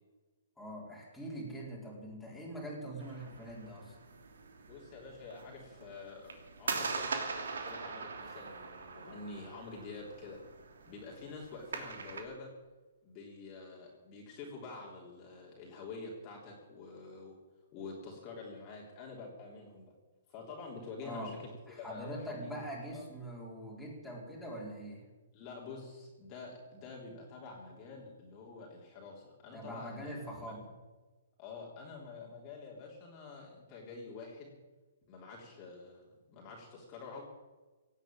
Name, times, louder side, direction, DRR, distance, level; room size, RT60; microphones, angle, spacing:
voice 1, 0.6-4.0 21.0-21.4 21.7-25.0 29.5-30.6, right 1 dB, 5° left, -5 dB, 4.1 m, -43 dB
sound 1, 3.0-12.2, right 4 dB, 85° right, 3.0 m, -42 dB
voice 2, 4.7-6.3 6.6-10.4 10.9-12.5 13.0-17.3 17.7-19.9 20.3-22.7 22.9-23.0 25.3-30.5 31.4-34.5 35.1-37.2, left 4 dB, 25° left, -2 dB, 3.4 m, -47 dB
17.5 x 8.3 x 8.9 m, 1.2 s
hypercardioid pair, 160°, 0 cm